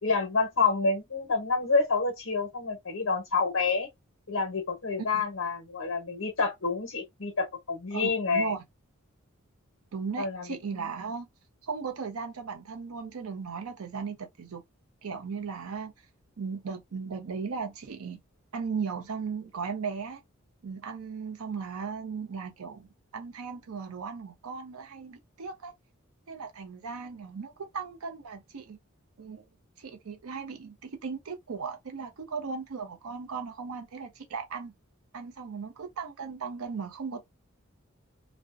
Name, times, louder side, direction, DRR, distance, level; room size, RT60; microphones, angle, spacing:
voice 1, 0.0-3.9 4.3-8.5 10.2-10.5 10.7-10.9, left 4 dB, 60° left, 0.7 m, -28 dB
voice 2, 7.9-8.6 9.9-11.3 11.6-14.6 15.0-15.9 16.4-18.2 18.5-20.2 20.6-22.9 23.1-25.7 26.3-28.8 29.2-29.5 29.8-34.7 35.1-37.2, right 5 dB, 85° right, 0.5 m, -37 dB
2.4 x 2.1 x 2.4 m
head